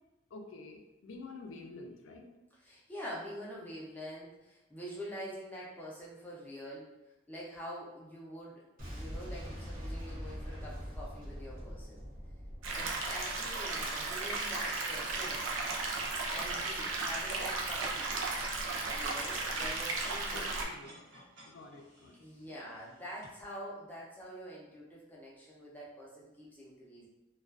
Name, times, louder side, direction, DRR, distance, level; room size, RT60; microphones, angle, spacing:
voice 1, 0.3-2.3 20.3-21.0 21.4-22.5, left 3 dB, 80° left, 3 dB, 0.4 m, -49 dB
voice 2, 2.6-6.9 7.3-12.0 12.7-15.4 16.3-18.1 18.9-20.5 22.2-27.1, equal, 10° left, -6 dB, 0.5 m, -45 dB
Boom, 8.8-13.7, equal, 45° right, 0.7 m, -43 dB
sound 1, 12.6-20.6, right 3 dB, 90° right, 0.4 m, -35 dB
sound 2, 19.9-23.3, right 1 dB, 70° right, 0.9 m, -54 dB
2.3 x 2.2 x 2.3 m, 0.98 s
head